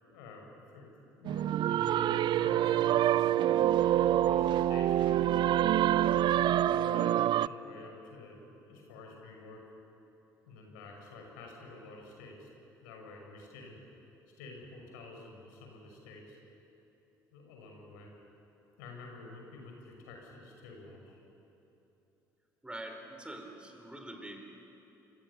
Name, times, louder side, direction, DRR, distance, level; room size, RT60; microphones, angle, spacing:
voice 1, 0.0-3.6 4.1-5.9 6.7-8.4 8.7-9.6 10.5-12.5 12.8-13.8 14.4-16.4 17.3-18.1 18.8-21.2, left 3 dB, 70° left, 1 dB, 5.8 m, -49 dB
sound 1, 1.2-7.5, right 12 dB, 45° right, 0.5 m, -26 dB
voice 2, 22.6-24.4, right 1 dB, 10° right, 3 dB, 4.7 m, -44 dB
29.5 x 27.5 x 7.0 m, 3.0 s
figure-of-eight pair, 55°, 10 cm